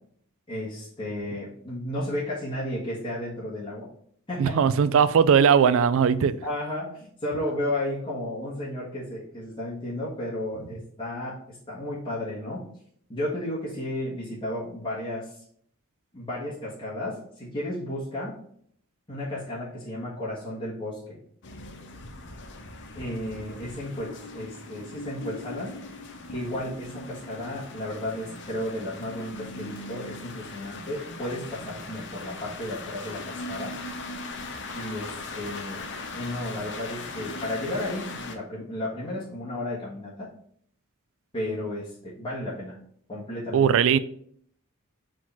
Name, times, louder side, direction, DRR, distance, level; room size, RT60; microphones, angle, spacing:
voice 1, 0.5-3.9 4.3-4.6 6.4-12.6 13.1-15.4 16.1-18.3 19.1-21.2 22.9-25.8 26.3-33.8 34.7-35.8 36.1-40.3 41.3-42.8 43.1-43.7, left 1 dB, 25° left, 1.6 m, -33 dB
voice 2, 4.4-6.3 43.5-44.0, right 7 dB, 65° right, 0.3 m, -19 dB
sound 1, 21.4-38.4, left 3 dB, 55° left, 0.8 m, -39 dB
4.9 x 3.7 x 5.5 m
head